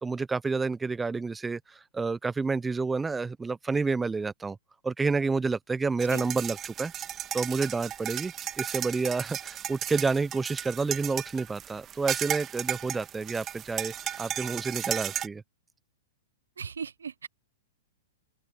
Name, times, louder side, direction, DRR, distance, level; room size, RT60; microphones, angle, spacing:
voice 1, 0.0-4.6 4.8-6.9 7.3-15.4, right 4 dB, 10° right, 0.5 m, -29 dB
sound 1, 6.0-15.3, right 10 dB, 25° right, 1.3 m, -35 dB
voice 2, 16.6-17.3, right 6 dB, 85° right, 0.4 m, -37 dB
open air
hypercardioid pair, 120°, 0 cm